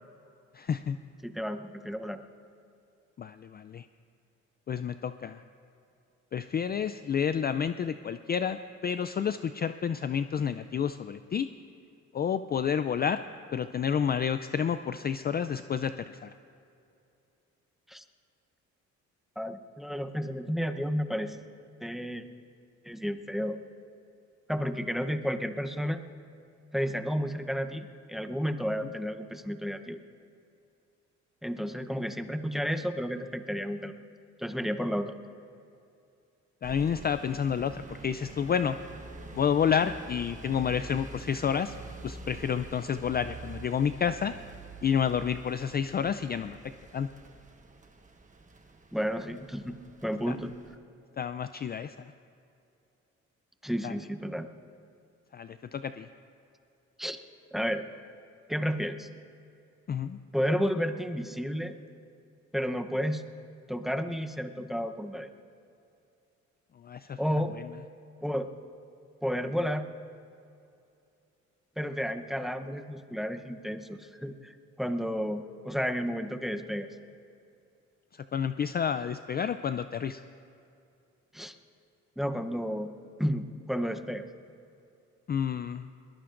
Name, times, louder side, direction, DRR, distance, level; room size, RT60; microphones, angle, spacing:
voice 1, 0.5-1.0 3.2-3.9 4.7-5.4 6.3-11.5 12.1-13.2 13.5-16.3 28.8-28.9 36.6-38.8 39.3-41.8 42.0-44.3 44.8-46.6 46.9-47.1 50.3-50.4 51.2-52.1 53.8-53.9 55.3-56.1 59.9-60.2 66.8-67.2 67.5-67.7 78.1-80.2 85.3-85.9, left 7 dB, 35° left, 11 dB, 0.4 m, -30 dB
voice 2, 1.2-2.2 17.9-18.0 19.4-21.4 21.8-22.2 22.8-23.6 24.5-26.0 26.7-30.0 31.4-33.9 34.4-35.1 48.9-49.8 50.0-50.5 53.6-54.5 57.0-57.2 57.5-57.8 58.5-59.1 60.3-61.7 62.5-63.3 63.7-65.3 67.2-67.6 68.2-68.5 69.2-69.9 71.8-76.9 81.3-81.5 82.2-82.9 83.2-84.3, equal, ahead, 7 dB, 0.8 m, -32 dB
sound 1, 36.6-50.8, right 3 dB, 25° right, 1.3 m, -47 dB
22.0 x 19.5 x 2.5 m, 2.6 s
cardioid pair, 90°, 30 cm